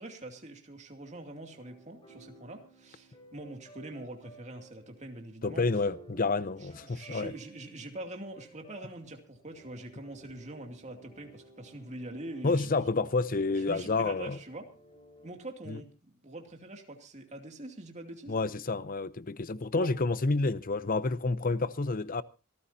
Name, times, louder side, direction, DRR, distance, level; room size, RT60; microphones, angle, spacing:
voice 1, 0.0-5.6 6.6-12.7 13.5-14.7 15.2-15.9 16.2-18.4 19.7-19.9, right 2 dB, 35° right, 2.5 m, -44 dB
sound 1, 1.0-15.3, right 2 dB, 25° left, 5.7 m, -57 dB
voice 2, 5.4-7.3 12.4-14.4 15.7-15.8 18.3-22.2, left 3 dB, 40° left, 0.7 m, -29 dB
26.5 x 14.5 x 2.8 m
head